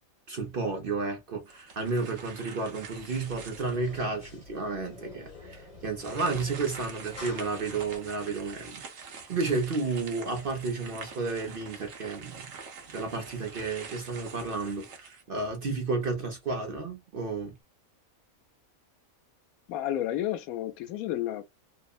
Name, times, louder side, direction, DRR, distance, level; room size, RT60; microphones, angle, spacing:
voice 1, 0.3-12.5 12.9-17.5, right 3 dB, 50° right, 0.7 m, -32 dB
sound 1, 1.5-4.0 4.6-4.7 5.9-15.7, right 5 dB, 65° right, 1.1 m, -46 dB
sound 2, 2.9-8.0, left 2 dB, 25° left, 1.0 m, -47 dB
voice 2, 19.7-21.4, left 12 dB, 85° left, 1.0 m, -31 dB
3.1 x 2.1 x 2.3 m
omnidirectional pair, 1.5 m